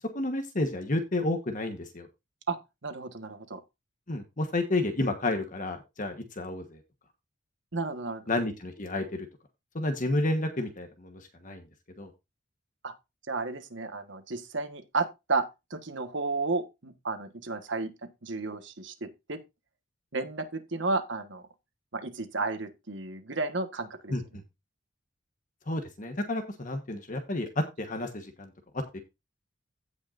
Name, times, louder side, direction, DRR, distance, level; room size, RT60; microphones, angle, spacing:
voice 1, 0.1-2.1 4.1-6.8 8.3-9.3 9.7-11.6 12.0-12.1 24.1-24.4 25.7-29.0, left 2 dB, 40° left, 1.3 m, -31 dB
voice 2, 2.8-3.6 7.7-8.2 12.8-12.9 13.3-15.4 15.7-19.4 20.1-21.4 21.9-24.1, right 3 dB, 65° right, 1.5 m, -32 dB
16.0 x 5.6 x 2.6 m
head